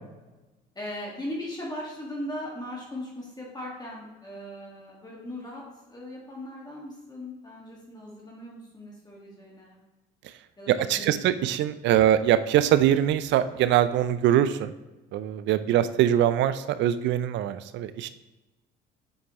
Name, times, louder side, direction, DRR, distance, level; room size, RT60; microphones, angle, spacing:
voice 1, 0.8-9.8 10.6-11.4 11.6-11.7 15.5-15.9, left 1 dB, 20° left, -4 dB, 1.7 m, -39 dB
voice 2, 10.7-14.7 15.1-18.1, right 11 dB, 70° right, 13 dB, 0.5 m, -23 dB
7.9 x 4.7 x 3.0 m, 1.1 s
supercardioid pair, 85°, 20 cm